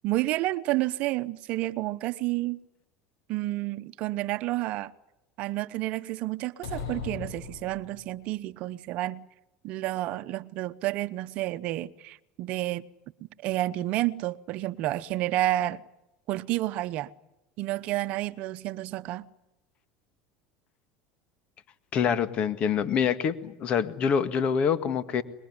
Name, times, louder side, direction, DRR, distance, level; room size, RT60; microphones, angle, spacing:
voice 1, 0.0-2.6 3.3-4.9 5.4-9.3 9.6-12.9 13.4-15.8 16.3-17.1 17.6-19.3, right 16 dB, 60° right, 0.9 m, -30 dB
sound 1, 6.6-8.2, left 7 dB, 75° left, 6.2 m, -38 dB
voice 2, 21.9-25.2, left 7 dB, 50° left, 1.8 m, -26 dB
25.0 x 21.5 x 9.7 m
supercardioid pair, 95°, 3 cm